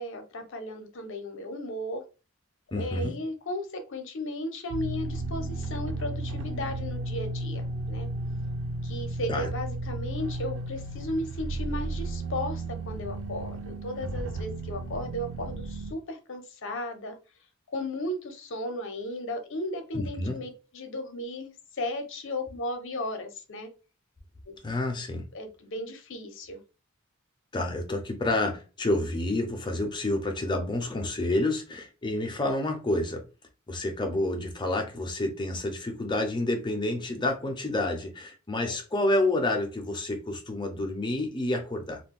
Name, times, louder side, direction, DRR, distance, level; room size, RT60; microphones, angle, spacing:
voice 1, 0.0-2.0 2.8-8.1 8.8-17.1 17.7-23.7 24.5-24.6 25.3-26.6 38.6-38.8, left 1 dB, 60° left, 0.6 m, -35 dB
voice 2, 2.7-3.1 9.3-9.5 19.9-20.4 24.6-25.2 27.5-33.2 33.7-42.0, left 2 dB, 20° left, 0.6 m, -29 dB
sound 1, 4.7-15.9, right 2 dB, 80° right, 0.4 m, -34 dB
2.4 x 2.2 x 3.6 m
head